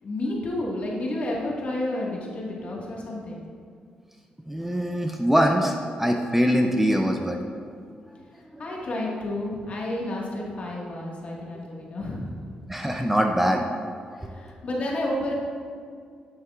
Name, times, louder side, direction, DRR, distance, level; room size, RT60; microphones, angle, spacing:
voice 1, 0.0-3.4 8.3-12.5 14.1-15.3, left 1 dB, 50° left, -3 dB, 1.8 m, -31 dB
voice 2, 4.5-7.4 12.7-13.6 14.2-14.3, equal, 10° right, 2 dB, 0.5 m, -23 dB
8.9 x 7.6 x 2.5 m, 2.2 s
cardioid pair, 95°, 3 cm